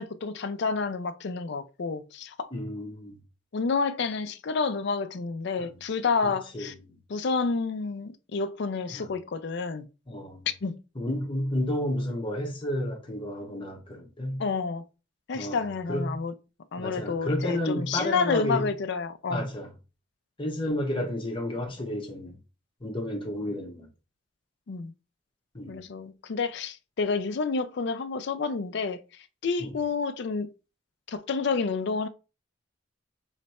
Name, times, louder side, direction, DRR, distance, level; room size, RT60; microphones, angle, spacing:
voice 1, 0.0-2.5 3.5-6.7 7.1-9.9 10.6-10.8 14.4-14.8 15.3-16.3 16.7-19.5 24.7-24.9 25.7-30.5 31.1-32.1, left 4 dB, 60° left, 0.4 m, -29 dB
voice 2, 2.5-3.2 5.6-5.7 6.5-6.7 8.9-9.1 10.1-10.5 10.9-14.4 15.3-16.2 16.8-18.7 19.3-19.7 20.4-22.4 22.8-23.9 25.5-25.8 29.6-29.7, left 1 dB, 25° left, 1.0 m, -31 dB
3.2 x 3.1 x 4.2 m
head